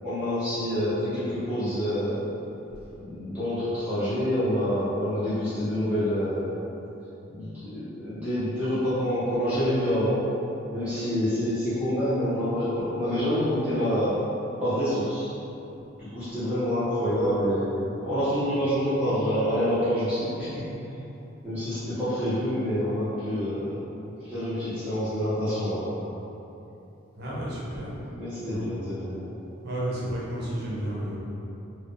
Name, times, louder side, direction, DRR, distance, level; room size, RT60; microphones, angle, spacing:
voice 1, 0.0-2.3 3.0-6.6 7.3-10.2 10.7-14.2 14.6-15.3 16.0-20.6 21.4-23.9 24.2-26.0 28.1-29.3, equal, 5° right, -16 dB, 0.8 m, -27 dB
voice 2, 27.2-28.0 28.4-28.8 29.6-31.2, right 1 dB, 50° right, -5 dB, 0.7 m, -32 dB
4.4 x 2.2 x 3.2 m, 2.9 s
head